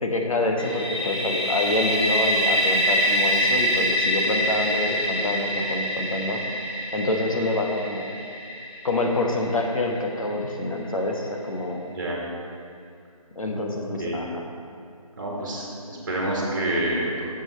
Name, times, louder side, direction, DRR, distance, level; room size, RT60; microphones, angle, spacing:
voice 1, 0.0-6.4 6.9-8.0 8.8-11.8 13.4-14.5, left 2 dB, 65° left, 2 dB, 1.2 m, -26 dB
sound 1, 0.6-10.3, equal, 45° left, 1.2 m, -25 dB
voice 2, 11.9-12.2 13.7-14.2 15.2-17.2, right 1 dB, 35° right, -3 dB, 1.9 m, -28 dB
8.0 x 7.3 x 4.4 m, 2.4 s
figure-of-eight pair, 170°, 19 cm